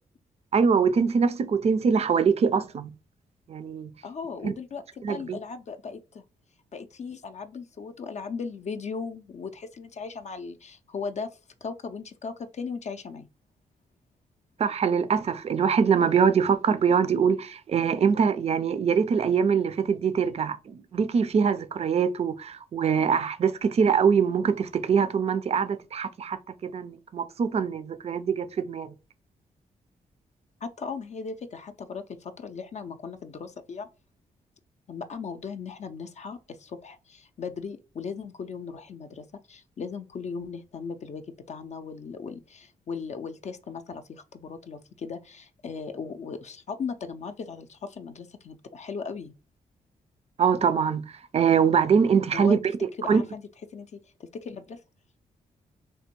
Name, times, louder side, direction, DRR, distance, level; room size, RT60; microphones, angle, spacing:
voice 1, 0.5-2.9 3.5-3.9 4.4-4.5 5.0-5.4 14.6-28.9 50.4-53.2, right 6 dB, 45° right, 0.4 m, -23 dB
voice 2, 4.0-4.8 5.1-6.2 6.7-13.3 30.6-33.9 34.9-41.2 41.5-49.3 52.3-52.6 53.0-53.4 53.7-54.8, left 5 dB, 50° left, 0.4 m, -37 dB
3.4 x 2.2 x 2.9 m
supercardioid pair, 50°, 15 cm